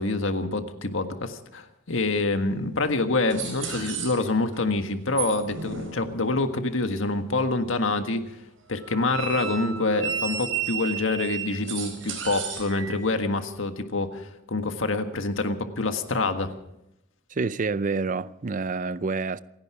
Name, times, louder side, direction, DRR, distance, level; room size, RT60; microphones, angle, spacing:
voice 1, 0.0-8.3 8.7-16.5, left 2 dB, 85° left, 1.6 m, -26 dB
sound 1, 2.5-2.6 3.3-4.6 5.1-6.5 8.8-13.0, right 7 dB, 85° right, 4.5 m, -33 dB
voice 2, 17.3-19.4, right 4 dB, 40° right, 0.5 m, -28 dB
28.0 x 10.5 x 4.9 m
head